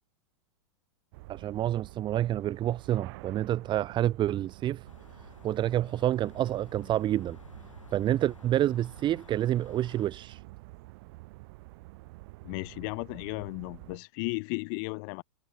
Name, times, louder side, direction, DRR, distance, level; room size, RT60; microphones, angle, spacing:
sound 1, 1.1-14.0, right 23 dB, 50° right, 3.4 m, -49 dB
voice 1, 1.3-4.9 5.4-7.4 7.9-10.4, right 12 dB, 30° right, 1.4 m, -28 dB
sound 2, 4.8-10.1, left 5 dB, 90° left, 6.5 m, -54 dB
voice 2, 12.4-15.2, left 38 dB, 50° left, 2.7 m, -35 dB
hypercardioid pair, 105°, 16 cm